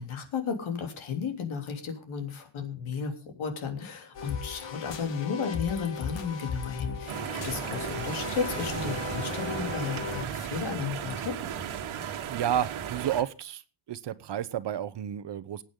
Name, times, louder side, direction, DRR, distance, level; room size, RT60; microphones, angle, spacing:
voice 1, 0.0-7.2 7.4-11.4, left 6 dB, 80° left, 4 dB, 3.4 m, -34 dB
sound 1, 4.1-10.2, left 6 dB, 65° left, 2.3 m, -37 dB
sound 2, 7.1-13.2, right 8 dB, 85° right, 1.8 m, -35 dB
voice 2, 12.3-13.6 13.9-15.6, right 10 dB, 60° right, 15 dB, 1.0 m, -31 dB
21.0 x 8.9 x 3.8 m, 0.33 s
cardioid pair, 125°, 48 cm